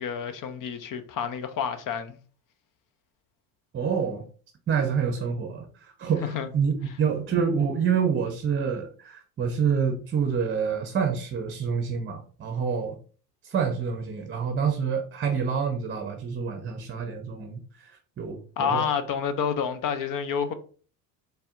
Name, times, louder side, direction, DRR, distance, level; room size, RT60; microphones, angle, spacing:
voice 1, 0.0-2.2 6.2-6.5 18.6-20.5, left 7 dB, 45° left, 0.7 m, -29 dB
voice 2, 3.7-4.3 4.7-13.0 13.4-17.9 18.2-18.8, right 6 dB, 25° right, 0.7 m, -27 dB
4.2 x 3.4 x 2.5 m
hypercardioid pair, 80°, 45 cm